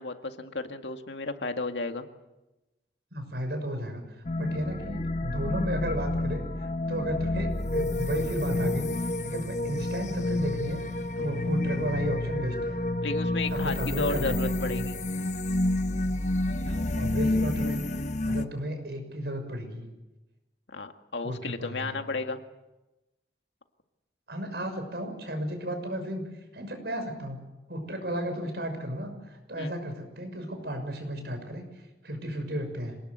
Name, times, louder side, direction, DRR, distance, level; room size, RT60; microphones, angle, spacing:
voice 1, 0.0-2.0 13.0-15.0 20.7-22.4 29.5-29.7, left 3 dB, 85° left, 6 dB, 2.0 m, -33 dB
voice 2, 3.1-4.0 4.4-8.9 9.2-10.8 11.2-12.8 13.5-14.9 16.7-17.8 18.2-19.9 21.2-21.9 24.3-26.2 26.5-27.4 27.7-31.6 32.0-32.9, equal, 65° right, 6 dB, 6.3 m, -33 dB
sound 1, 4.2-18.4, left 2 dB, 40° left, 1.0 m, -29 dB
27.0 x 19.0 x 8.1 m, 1.0 s
head